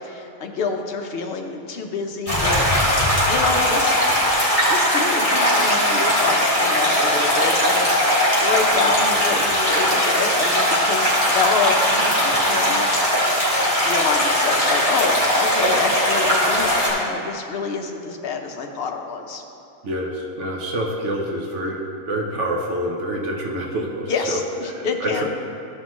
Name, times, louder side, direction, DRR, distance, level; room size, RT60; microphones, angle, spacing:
voice 1, 0.0-2.6 3.3-3.9 4.7-13.0 13.8-19.4 24.1-25.2, left 5 dB, 55° left, 3 dB, 0.9 m, -27 dB
sound 1, 2.3-16.9, equal, 25° left, 2.1 m, -19 dB
voice 2, 19.8-21.8 22.0-24.4 24.6-25.2, right 1 dB, 65° right, -1 dB, 1.1 m, -27 dB
13.5 x 5.6 x 3.1 m, 2.6 s
omnidirectional pair, 1.4 m